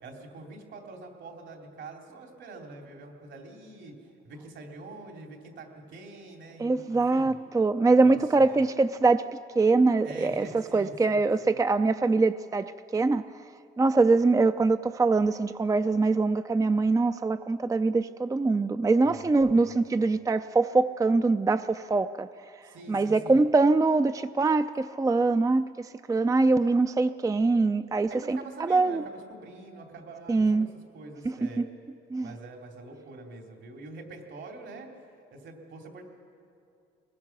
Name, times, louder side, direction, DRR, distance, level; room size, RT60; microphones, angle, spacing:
voice 1, 0.0-3.9 4.2-7.4 8.0-8.6 10.0-11.6 19.0-19.7 22.6-23.4 28.1-31.6 32.2-34.9 35.3-36.0, right 2 dB, 70° right, 2 dB, 3.3 m, -45 dB
voice 2, 6.6-9.2 9.6-13.2 13.8-22.3 22.9-29.0 30.3-30.7 31.4-31.5 32.1-32.3, right 3 dB, 15° right, 11 dB, 0.5 m, -23 dB
22.5 x 20.0 x 6.1 m, 2.5 s
cardioid pair, 90°, 20 cm